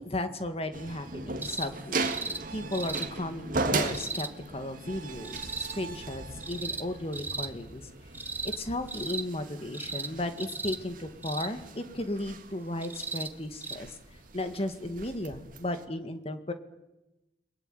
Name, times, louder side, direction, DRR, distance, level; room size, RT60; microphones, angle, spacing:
voice 1, 0.0-2.2 2.5-7.9 8.6-13.9 14.3-16.5, left 1 dB, 35° left, 8 dB, 2.0 m, -35 dB
sound 1, 0.7-15.9, right 3 dB, 50° right, 2.2 m, -38 dB
sound 2, 1.4-1.7 2.0-2.4 2.7-3.1 3.9-4.3 5.2-5.7 6.4-6.8 7.1-7.5 8.1-8.6 8.9-9.2 9.7-10.1 10.4-10.8 11.2-11.5 12.8-13.3 13.6-13.8 14.8-14.9, right 3 dB, 10° right, 1.2 m, -36 dB
29.5 x 22.0 x 9.1 m, 1.0 s
head